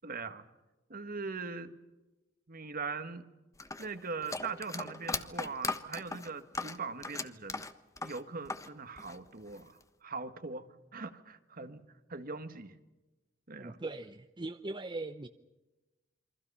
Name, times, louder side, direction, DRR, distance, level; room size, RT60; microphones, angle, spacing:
voice 1, 0.0-0.5 0.9-1.8 2.5-3.3 3.8-7.6 8.0-11.8 12.1-12.8 13.5-13.8, right 4 dB, 50° right, 10 dB, 1.7 m, -41 dB
sound 1, 3.6-8.7 9.0-9.8, left 3 dB, 15° left, 1.2 m, -38 dB
voice 2, 13.6-15.3, right 2 dB, 25° right, 8 dB, 0.8 m, -40 dB
28.0 x 24.0 x 5.6 m, 1.1 s
head